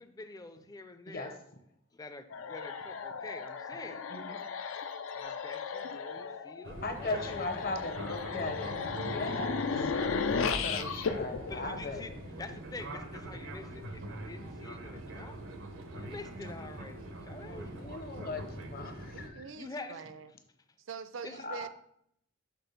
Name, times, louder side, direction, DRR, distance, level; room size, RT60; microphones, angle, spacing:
voice 1, 0.0-1.4 1.9-4.1 5.1-7.5 11.5-15.4 15.9-17.8 19.6-20.0 21.2-21.5, left 3 dB, 20° left, 9 dB, 0.4 m, -46 dB
sound 1, 2.3-12.5, left 5 dB, 85° left, 0.4 m, -36 dB
Fixed-wing aircraft airplane, 6.6-19.3, right 1 dB, 90° right, 0.8 m, -43 dB
voice 2, 6.8-9.9 10.6-12.0 17.4-19.4 21.4-21.7, left 2 dB, 50° left, 6 dB, 0.8 m, -38 dB
voice 3, 19.1-20.3 20.8-21.7, right 5 dB, 70° right, 12 dB, 0.5 m, -44 dB
6.0 x 3.3 x 5.6 m, 0.72 s
head